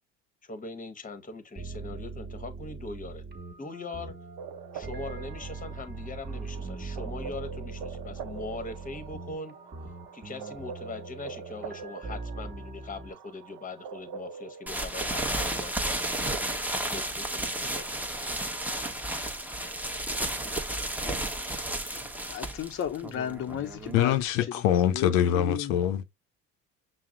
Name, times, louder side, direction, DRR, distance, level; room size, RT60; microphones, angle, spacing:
voice 1, 0.4-3.2 3.6-4.1 4.7-9.5 10.1-16.2 16.9-18.3, left 3 dB, 20° left, 0.9 m, -41 dB
sound 1, 1.6-13.1, right 3 dB, 25° right, 1.2 m, -41 dB
sound 2, 4.4-14.7, right 6 dB, 60° right, 0.6 m, -44 dB
sound 3, 14.7-24.2, right 1 dB, 5° right, 0.7 m, -32 dB
voice 2, 22.3-24.5 24.9-25.8, left 9 dB, 35° left, 0.5 m, -34 dB
voice 3, 23.9-26.1, left 10 dB, 90° left, 0.6 m, -24 dB
5.9 x 2.0 x 3.7 m
hypercardioid pair, 70°, 38 cm